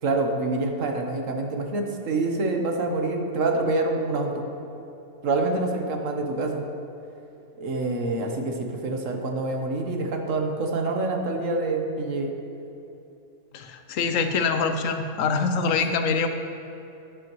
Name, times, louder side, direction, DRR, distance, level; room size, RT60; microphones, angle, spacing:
voice 1, 0.0-4.4 5.2-6.6 7.6-12.3, right 2 dB, 75° right, 3 dB, 1.4 m, -26 dB
voice 2, 13.5-16.3, left 5 dB, 80° left, 7 dB, 1.1 m, -24 dB
10.5 x 10.0 x 3.1 m, 2.9 s
omnidirectional pair, 1.3 m